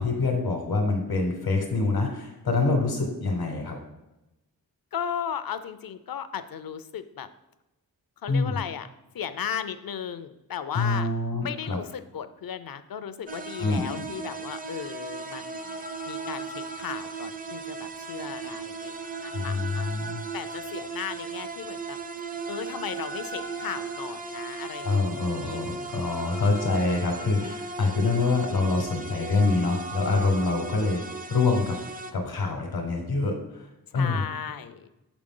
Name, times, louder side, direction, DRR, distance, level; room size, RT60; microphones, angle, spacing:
voice 1, 0.0-3.8 8.3-8.6 10.7-11.8 13.6-14.1 19.3-20.3 24.8-31.0 31.3-31.8 32.1-33.7 33.9-34.2, left 3 dB, 85° left, 0 dB, 1.1 m, -26 dB
voice 2, 4.9-7.3 8.2-8.9 9.1-11.1 11.4-15.8 16.0-18.9 19.2-19.9 20.3-22.0 22.5-26.3 33.9-34.9, left 8 dB, 70° left, 12 dB, 0.6 m, -36 dB
sound 1, 13.3-32.1, right 3 dB, 25° right, 0.5 m, -36 dB
7.0 x 5.0 x 3.8 m, 0.96 s
wide cardioid pair, 55°, 37 cm